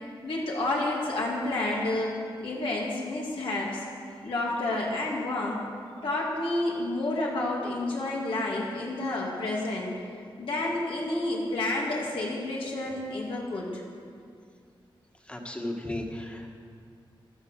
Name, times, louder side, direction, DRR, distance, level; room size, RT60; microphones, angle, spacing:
voice 1, 0.2-2.1 2.4-3.8 4.2-5.6 6.0-9.9 10.4-13.8, left 2 dB, 75° left, -4 dB, 2.9 m, -30 dB
voice 2, 15.3-16.5, left 1 dB, 15° left, 1 dB, 1.9 m, -35 dB
15.0 x 12.5 x 6.7 m, 2.3 s
wide cardioid pair, 130°, 9 cm